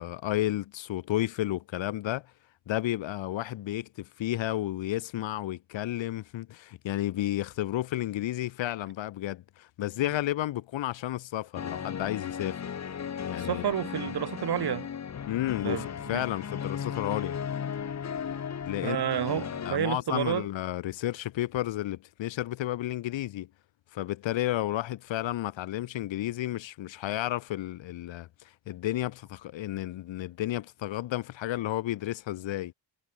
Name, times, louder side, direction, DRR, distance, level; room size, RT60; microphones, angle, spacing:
voice 1, 0.0-2.3 2.7-12.6 13.3-13.6 15.3-17.4 18.6-19.0 19.6-23.5 23.9-28.3 28.7-32.7, left 14 dB, 85° left, 0.8 m, -32 dB
sound 1, 11.5-19.7, left 7 dB, 35° left, 1.1 m, -36 dB
voice 2, 13.4-14.9 15.6-16.2 18.8-20.5, right 9 dB, 60° right, 2.4 m, -30 dB
wide cardioid pair, 180°, 44 cm